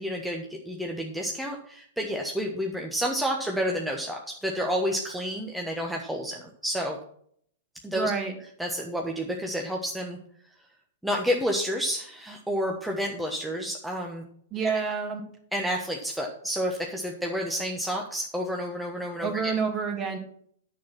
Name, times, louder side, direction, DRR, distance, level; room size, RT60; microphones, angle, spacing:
voice 1, 0.0-7.0 7.8-8.1 8.6-10.2 11.0-14.3 14.6-14.8 15.5-19.5, equal, 5° right, 0 dB, 1.3 m, -30 dB
voice 2, 7.9-8.3 14.5-15.2 19.2-20.2, right 5 dB, 25° right, 5 dB, 2.3 m, -28 dB
10.0 x 6.6 x 5.9 m, 0.63 s
figure-of-eight pair, 105°, 0 cm